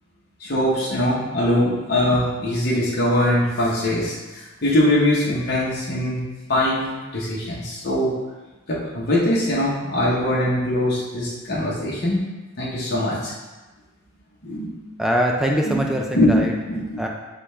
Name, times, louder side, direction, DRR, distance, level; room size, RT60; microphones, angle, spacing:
voice 1, 0.4-6.2 6.5-8.2 8.7-12.2 12.6-13.3 14.4-14.7 15.7-15.8 16.1-16.4 16.7-17.0, left 1 dB, 50° left, -7 dB, 0.8 m, -22 dB
voice 2, 15.0-16.5 17.0-17.1, equal, ahead, 0 dB, 0.3 m, -22 dB
5.1 x 2.4 x 4.3 m, 1.2 s
head